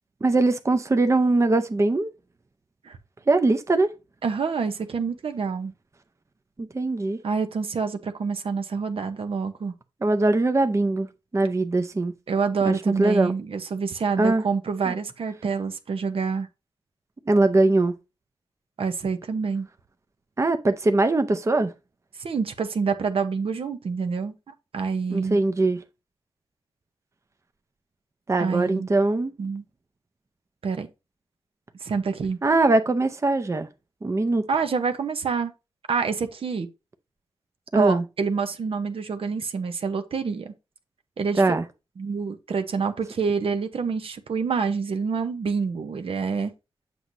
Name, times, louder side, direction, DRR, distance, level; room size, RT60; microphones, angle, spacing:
voice 1, 0.2-2.1 3.3-3.9 6.6-7.2 10.0-11.1 11.3-12.1 12.7-13.3 14.2-14.4 14.9-15.0 17.3-17.9 20.4-21.7 25.1-25.8 28.3-29.3 32.4-33.7 34.0-34.4 37.7-38.0 41.4-41.6, right 2 dB, 30° right, 0.6 m, -21 dB
voice 2, 4.2-5.7 7.2-9.7 12.3-16.5 18.8-19.7 22.2-25.4 28.4-28.9 29.4-29.6 30.6-30.9 31.8-32.4 34.5-35.5 35.9-36.7 37.7-40.5 41.2-41.6 42.0-46.5, right 5 dB, 65° right, 0.8 m, -27 dB
7.8 x 6.1 x 2.7 m
wide cardioid pair, 90°, 10 cm